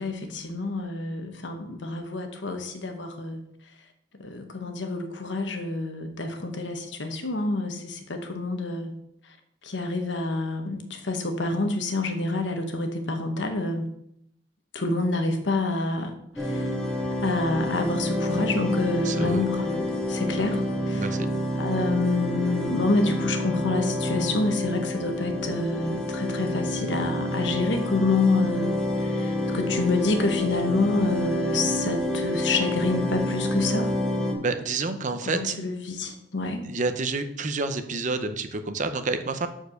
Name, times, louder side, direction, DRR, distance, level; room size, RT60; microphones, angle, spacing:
voice 1, 0.0-3.4 4.2-8.9 9.6-13.9 14.7-16.7 17.2-20.6 20.9-21.2 21.5-34.0 35.3-36.6, left 2 dB, 70° left, 5 dB, 1.2 m, -27 dB
sound 1, 16.4-34.3, left 1 dB, 5° left, 1.3 m, -28 dB
voice 2, 19.0-19.4 20.9-21.3 34.4-35.5 36.6-39.5, right 3 dB, 40° right, 8 dB, 0.7 m, -29 dB
7.1 x 4.6 x 6.5 m, 0.74 s
head